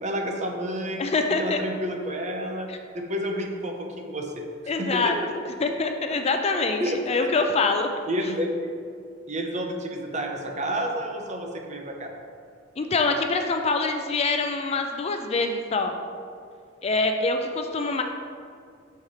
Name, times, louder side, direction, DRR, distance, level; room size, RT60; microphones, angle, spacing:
voice 1, 0.0-1.0 1.4-2.7 2.9-4.3 4.8-5.1 6.8-7.3 8.1-8.7 9.3-12.1, equal, 40° right, 2 dB, 0.8 m, -30 dB
voice 2, 1.0-1.6 2.7-2.8 4.7-7.9 12.8-16.0 16.8-18.0, left 3 dB, 35° left, 5 dB, 0.4 m, -25 dB
6.9 x 4.5 x 4.9 m, 2.2 s
head